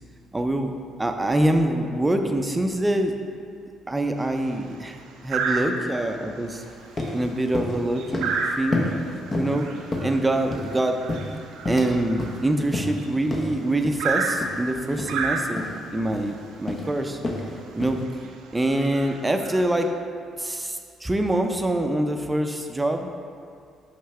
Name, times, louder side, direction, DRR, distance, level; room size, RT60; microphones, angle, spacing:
voice 1, 0.3-0.7 1.0-3.2 3.9-6.6 7.1-8.9 9.3-9.6 10.0-11.0 11.7-15.6 15.9-17.2 17.8-18.0 18.5-19.9 20.4-23.1, right 1 dB, 15° right, 5 dB, 0.6 m, -25 dB
sound 1, 4.2-4.5 5.3-6.1 6.5-6.7 7.0-13.3 14.0-15.9 16.9-17.0 17.4-17.5 18.1-18.3 18.7-19.9, right 4 dB, 70° right, 0.5 m, -30 dB
sound 2, 6.6-6.7 7.0-7.2 7.5-7.8 8.1-8.4 8.7-9.0 9.3-9.6 9.9-10.7 11.1-11.9 12.2-12.4 12.7-13.0 13.3-13.5 13.8-14.0 14.4-14.6 14.9-15.1 15.6-15.8 16.1-16.3 16.7-16.9 17.2-17.5 17.8-18.0, left 2 dB, 35° left, 1.0 m, -29 dB
5.7 x 5.4 x 3.3 m, 2.2 s
hypercardioid pair, 45°, 0 cm